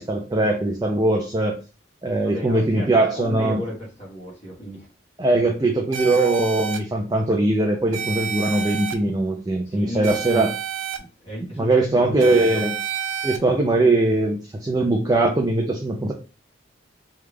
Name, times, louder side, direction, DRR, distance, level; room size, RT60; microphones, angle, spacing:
voice 1, 0.0-1.6 2.0-3.6 5.2-10.5 11.6-12.7 13.2-16.1, right 2 dB, 20° right, 1 dB, 0.4 m, -21 dB
voice 2, 2.2-4.9 9.6-10.4 11.0-12.6, equal, 30° left, -4 dB, 1.4 m, -34 dB
sound 1, 5.9-6.8 7.9-8.9 10.0-11.0 12.2-13.4, right 8 dB, 90° right, 0.4 m, -29 dB
3.1 x 2.4 x 3.3 m, 0.33 s
head